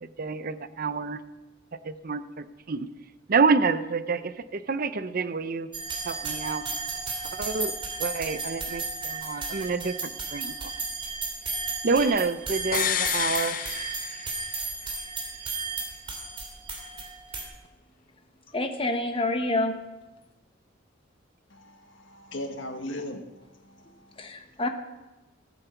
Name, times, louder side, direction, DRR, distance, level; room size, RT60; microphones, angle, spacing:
voice 1, 0.0-1.2 1.8-2.9 3.3-5.7 6.0-6.6 7.2-7.7 8.0-10.7 11.8-13.6, right 4 dB, 50° right, 13 dB, 0.6 m, -28 dB
sound 1, 5.7-17.4, right 3 dB, 25° right, 3.0 m, -34 dB
sound 2, 12.7-14.6 14.9-15.0, left 9 dB, 45° left, 0.6 m, -29 dB
voice 2, 18.5-19.8 24.2-24.7, left 2 dB, 30° left, 5 dB, 1.2 m, -27 dB
voice 3, 21.5-24.2, left 1 dB, 70° left, 5 dB, 1.7 m, -39 dB
15.0 x 9.1 x 7.0 m, 1.1 s
head